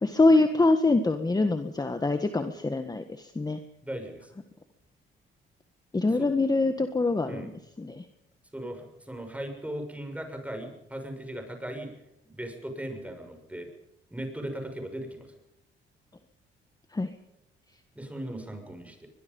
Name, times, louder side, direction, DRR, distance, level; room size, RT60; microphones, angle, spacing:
voice 1, 0.0-3.6 5.9-7.5 7.8-8.0 16.9-17.1, left 2 dB, 20° left, 8 dB, 1.7 m, -24 dB
voice 2, 3.8-4.3 6.1-6.3 7.3-7.5 8.5-11.9 12.3-13.7 14.1-15.3 17.9-19.1, right 1 dB, 5° right, 5 dB, 6.5 m, -38 dB
23.0 x 22.0 x 5.5 m, 0.86 s
cardioid pair, 90°, 20 cm